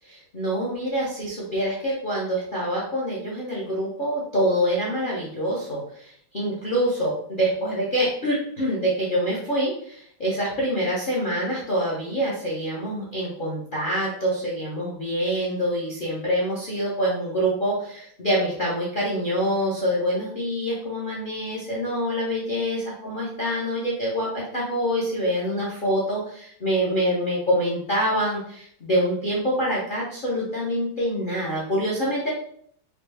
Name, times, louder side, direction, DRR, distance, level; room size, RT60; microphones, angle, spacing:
voice 1, 0.1-32.3, equal, 60° left, -5 dB, 0.5 m, -26 dB
4.8 x 2.0 x 3.3 m, 0.63 s
omnidirectional pair, 2.3 m